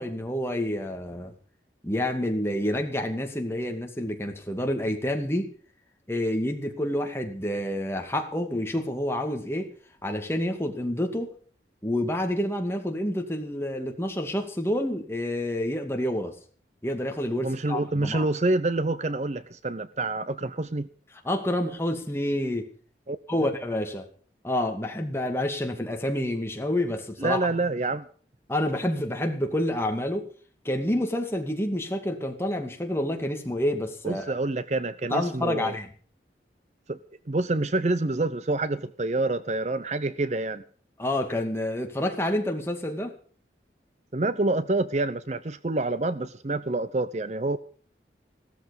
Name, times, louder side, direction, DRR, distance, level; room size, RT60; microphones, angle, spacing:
voice 1, 0.0-1.3 1.8-5.5 6.1-9.7 10.0-11.3 11.8-16.4 16.8-18.3 21.2-22.7 23.3-24.1 24.4-27.5 28.5-30.3 30.6-34.4 35.1-35.9 41.0-43.1, left 1 dB, 15° left, 2.4 m, -28 dB
voice 2, 17.4-20.9 23.1-23.5 27.2-28.0 34.0-35.7 36.9-37.0 37.3-40.6 44.1-47.6, right 2 dB, 40° right, 0.7 m, -27 dB
16.5 x 13.5 x 5.4 m
head